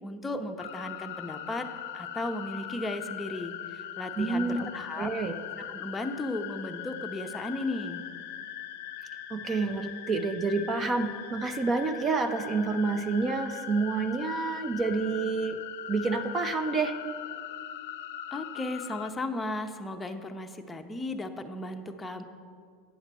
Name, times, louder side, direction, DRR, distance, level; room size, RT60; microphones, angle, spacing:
voice 1, 0.0-1.7 1.9-5.1 5.6-8.0 18.3-22.2, left 2 dB, 10° left, 5 dB, 0.6 m, -35 dB
sound 1, 0.6-19.1, left 10 dB, 85° left, 0.5 m, -40 dB
voice 2, 4.2-4.7 5.0-5.3 9.3-15.6 15.9-16.9, right 4 dB, 25° right, 9 dB, 0.5 m, -28 dB
9.2 x 6.4 x 6.1 m, 2.1 s
supercardioid pair, 130°, 0 cm